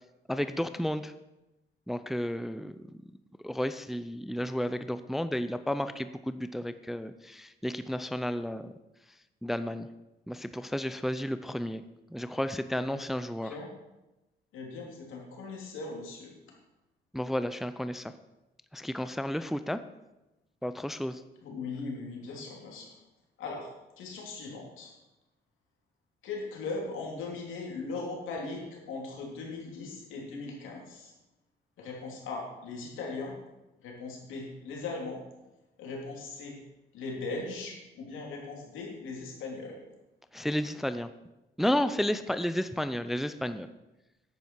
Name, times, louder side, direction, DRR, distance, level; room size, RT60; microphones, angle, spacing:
voice 1, 0.3-1.1 1.9-2.7 3.4-8.7 9.4-9.9 10.3-11.8 12.1-13.5 17.1-18.1 18.7-19.8 20.6-21.2 40.3-41.1 41.6-43.7, equal, ahead, 11 dB, 0.5 m, -32 dB
voice 2, 14.5-16.3 21.4-22.9 23.4-23.7 24.0-24.9 26.2-31.1 31.8-33.3 33.8-35.2 35.8-36.6 36.9-39.8, left 3 dB, 85° left, -1 dB, 3.0 m, -39 dB
10.5 x 8.5 x 4.5 m, 0.98 s
cardioid pair, 90°, 20 cm